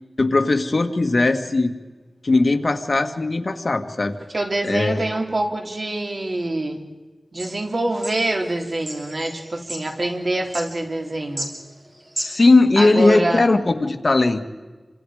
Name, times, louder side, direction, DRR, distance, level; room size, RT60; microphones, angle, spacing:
voice 1, 0.2-1.7 2.2-4.1 4.6-5.1 12.2-14.5, left 2 dB, 55° left, 6 dB, 1.8 m, -18 dB
voice 2, 4.3-6.8 7.3-11.5 12.8-13.5, right 2 dB, 55° right, 2 dB, 3.3 m, -25 dB
sound 1, 7.4-12.5, right 1 dB, 40° right, 6.5 m, -35 dB
29.5 x 26.0 x 5.0 m, 1.3 s
wide cardioid pair, 80°, 0 cm